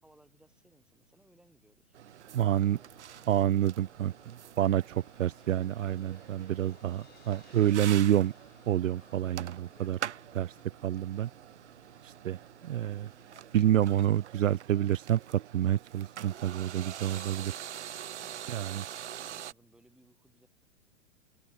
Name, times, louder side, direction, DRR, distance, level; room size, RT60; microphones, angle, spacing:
voice 1, 0.0-2.0 2.4-3.3 3.8-4.3 18.2-20.5, right 1 dB, ahead, 4.6 m, -63 dB
sound 1, 1.9-19.5, right 10 dB, 60° right, 2.1 m, -45 dB
voice 2, 2.3-2.8 3.3-4.1 4.6-8.3 8.7-10.0 10.3-10.5 10.8-11.3 12.0-13.1 13.5-17.6 18.5-18.8, right 11 dB, 80° right, 0.5 m, -28 dB
sound 2, 2.5-13.8, left 6 dB, 75° left, 5.3 m, -64 dB
Crash cymbal, 4.3-9.7, left 13 dB, 25° left, 4.8 m, -65 dB
open air
figure-of-eight pair, 120°, 38 cm